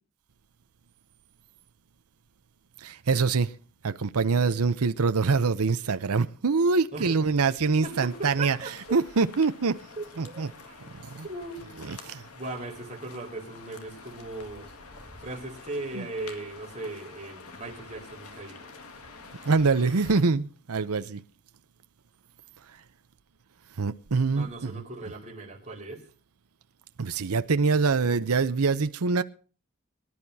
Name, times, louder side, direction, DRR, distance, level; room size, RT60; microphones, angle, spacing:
voice 1, 2.8-3.5 3.8-8.6 8.9-9.8 10.2-10.5 11.0-11.2 12.0-12.2 16.0-16.1 19.4-21.2 23.8-24.7 27.0-29.2, right 4 dB, 80° right, 0.7 m, -24 dB
sound 1, 7.8-20.2, left 4 dB, 80° left, 2.0 m, -48 dB
voice 2, 7.8-9.0 10.0-10.8 11.2-11.6 12.3-14.7 15.2-18.7 24.3-26.1, right 2 dB, 30° right, 4.3 m, -38 dB
24.0 x 11.0 x 2.8 m
head